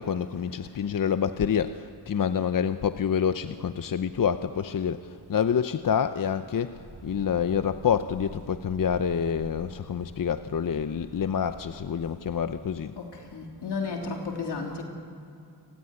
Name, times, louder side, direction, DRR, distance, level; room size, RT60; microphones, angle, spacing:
voice 1, 0.0-12.9, left 7 dB, 55° left, 10 dB, 0.9 m, -27 dB
sound 1, 6.7-12.7, right 2 dB, 85° right, 6.2 m, -47 dB
voice 2, 13.0-14.8, left 4 dB, 80° left, 1 dB, 3.4 m, -33 dB
28.5 x 17.5 x 9.9 m, 2.6 s
cardioid pair, 80°, 40 cm